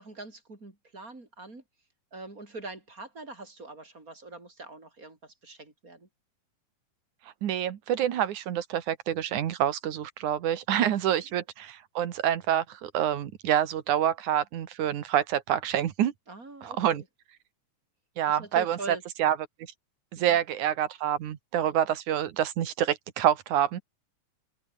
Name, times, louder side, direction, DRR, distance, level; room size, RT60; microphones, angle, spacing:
voice 1, 0.0-1.6 2.1-6.1 16.3-17.1 18.3-19.4 20.2-20.4, right 2 dB, 25° right, 4.8 m, -43 dB
voice 2, 7.4-16.1 16.6-17.0 18.2-18.8 19.2-19.4 20.1-23.8, right 10 dB, 70° right, 3.0 m, -27 dB
open air
omnidirectional pair, 3.7 m